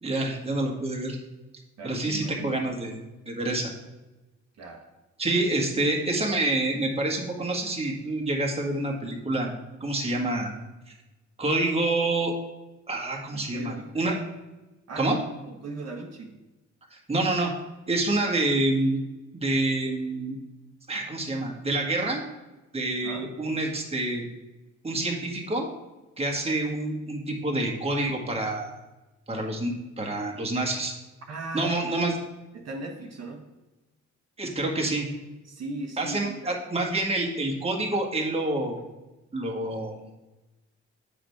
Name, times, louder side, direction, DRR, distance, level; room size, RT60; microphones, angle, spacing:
voice 1, 0.0-1.2 1.8-2.9 3.3-3.7 5.2-9.5 9.8-10.5 10.9-11.0 11.4-12.3 12.9-14.1 14.9-15.2 16.9-17.5 17.9-19.0 19.3-20.4 20.9-22.2 22.7-24.2 24.8-25.7 26.2-28.7 29.3-30.9 31.5-32.2 34.4-35.1 36.0-38.8 39.3-40.0, right 2 dB, 20° right, 0 dB, 1.6 m, -27 dB
voice 2, 1.8-2.5 4.6-4.8 13.3-14.0 14.9-15.2 15.4-16.3 23.0-23.3 31.3-31.9 32.5-33.5 35.4-36.5 37.9-38.0, right 2 dB, 55° right, 0 dB, 1.2 m, -38 dB
7.8 x 5.1 x 4.7 m, 1.0 s
cardioid pair, 90°, 30 cm